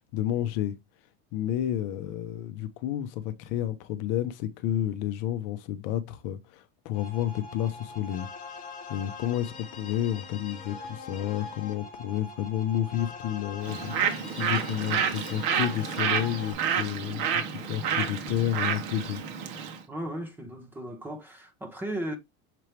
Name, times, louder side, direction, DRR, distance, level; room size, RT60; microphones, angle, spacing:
voice 1, 0.1-0.7 1.3-8.3 8.9-17.4 17.7-19.2, left 11 dB, 45° left, 0.7 m, -30 dB
sound 1, 6.9-16.5, left 4 dB, 30° left, 2.1 m, -43 dB
Bird, 13.6-19.8, right 7 dB, 50° right, 1.4 m, -29 dB
voice 2, 19.9-22.2, right 1 dB, 5° right, 0.9 m, -36 dB
6.8 x 4.5 x 3.2 m
cardioid pair, 180°, 29 cm